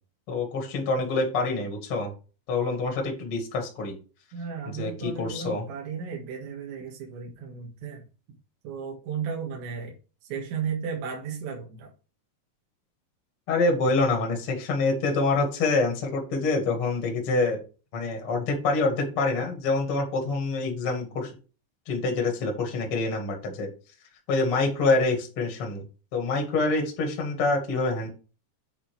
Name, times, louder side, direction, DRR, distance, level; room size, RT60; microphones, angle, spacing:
voice 1, 0.3-2.1 2.5-3.9 4.7-5.6 13.5-17.6 17.9-21.3 21.9-23.7 24.3-25.8 26.1-28.1, left 3 dB, 45° left, 2 dB, 1.8 m, -26 dB
voice 2, 4.3-8.1 8.6-10.0 10.2-11.9, right 6 dB, 75° right, -2 dB, 3.7 m, -34 dB
9.0 x 4.2 x 4.6 m, 0.35 s
omnidirectional pair, 5.3 m